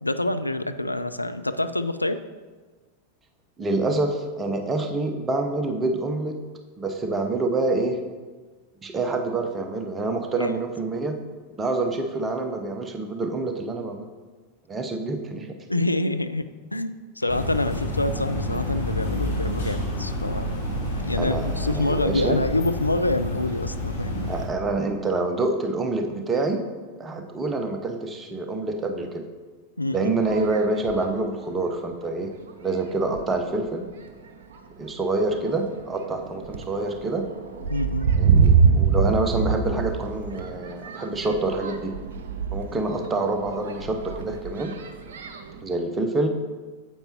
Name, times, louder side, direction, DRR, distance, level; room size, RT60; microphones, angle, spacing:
voice 1, 0.0-2.2 10.4-10.6 15.7-20.6 21.0-24.3 29.8-30.2 37.7-38.1, left 2 dB, 85° left, 10 dB, 0.3 m, -26 dB
voice 2, 3.6-6.4 6.8-8.0 8.8-11.2 11.6-14.1 14.7-15.5 21.2-22.4 24.3-26.7 27.0-29.3 29.9-32.3 32.6-33.9 34.8-37.3 38.2-41.9 42.5-44.8 45.6-46.3, right 2 dB, 20° right, 5 dB, 0.8 m, -27 dB
sound 1, 17.3-24.5, left 1 dB, 70° left, 2.0 m, -29 dB
sound 2, 30.1-31.2 31.9-32.0 32.5-32.7 33.1-33.7 34.3-34.6 35.0-45.6, right 6 dB, 60° right, 0.7 m, -25 dB
8.9 x 8.1 x 2.9 m, 1.3 s
figure-of-eight pair, 90°, 0 cm